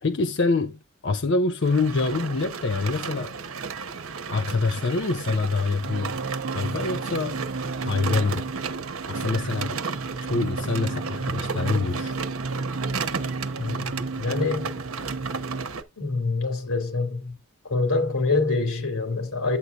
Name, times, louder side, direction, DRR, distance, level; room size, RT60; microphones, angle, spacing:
voice 1, 0.0-3.3 4.3-6.2 6.5-7.5 7.8-8.5 9.1-9.8 10.3-12.1, left 3 dB, 55° left, 0.5 m, -25 dB
sound 1, 1.6-15.8, right 5 dB, 75° right, 0.9 m, -34 dB
sound 2, 5.8-15.7, right 3 dB, 45° right, 0.5 m, -32 dB
voice 2, 13.6-14.8 16.0-17.4 17.6-19.6, left 3 dB, 85° left, 2.5 m, -26 dB
9.5 x 8.1 x 2.4 m
head